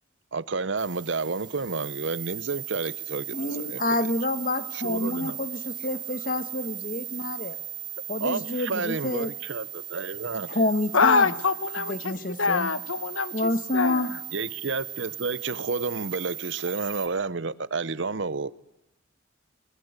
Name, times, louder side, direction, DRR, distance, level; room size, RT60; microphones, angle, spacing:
voice 1, 0.3-3.8 4.7-5.4 8.2-10.5 14.3-18.5, right 4 dB, 65° right, 18 dB, 0.8 m, -30 dB
sound 1, 0.8-17.1, right 12 dB, 20° right, 2.4 m, -38 dB
voice 2, 3.3-7.6 8.1-9.3 10.5-11.3 11.9-12.7 13.3-14.1, left 2 dB, 40° left, 12 dB, 1.4 m, -28 dB
voice 3, 10.9-14.1, left 4 dB, 90° left, 15 dB, 1.2 m, -25 dB
23.5 x 21.0 x 8.1 m, 0.86 s
head